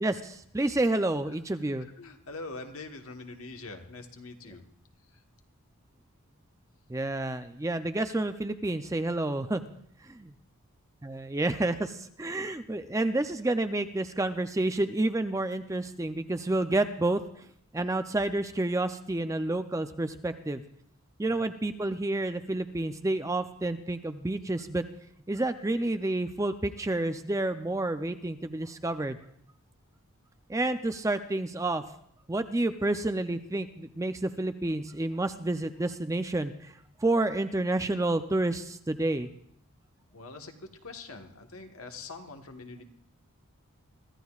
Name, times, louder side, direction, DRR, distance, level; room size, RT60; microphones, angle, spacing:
voice 1, 0.0-1.9 6.9-9.6 10.1-10.3 11.0-17.2 17.7-20.6 21.2-24.8 25.3-29.2 30.5-31.8 32.3-36.7 37.0-39.3, right 2 dB, 15° right, 9 dB, 0.4 m, -29 dB
voice 2, 2.0-4.6 21.2-21.3 40.1-40.6 40.8-42.8, left 3 dB, 75° left, 4 dB, 1.4 m, -43 dB
24.0 x 14.0 x 2.4 m, 0.66 s
head